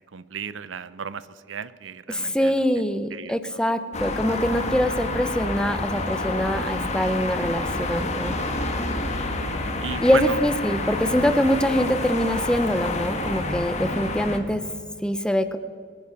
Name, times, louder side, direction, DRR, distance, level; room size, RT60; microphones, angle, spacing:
voice 1, 0.1-2.6 3.1-3.6 9.8-10.4, right 6 dB, 90° right, 16 dB, 0.6 m, -34 dB
voice 2, 2.1-8.3 10.0-14.6 15.0-15.6, equal, 5° left, 11 dB, 0.7 m, -24 dB
sound 1, 3.9-14.4, left 2 dB, 35° left, 1.5 m, -28 dB
22.5 x 9.9 x 5.7 m, 2.2 s
head